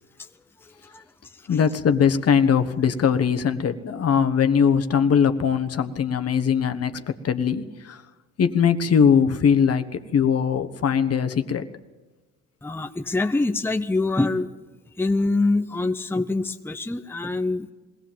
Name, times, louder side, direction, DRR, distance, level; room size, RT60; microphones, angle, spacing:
voice 1, 0.6-1.0 1.3-1.6 12.6-14.5 15.0-17.7, left 2 dB, 5° left, 7 dB, 0.8 m, -25 dB
voice 2, 1.5-8.0 8.4-11.6, left 7 dB, 55° left, 9 dB, 1.3 m, -21 dB
21.5 x 17.0 x 7.5 m, 1.2 s
cardioid pair, 90°, 30 cm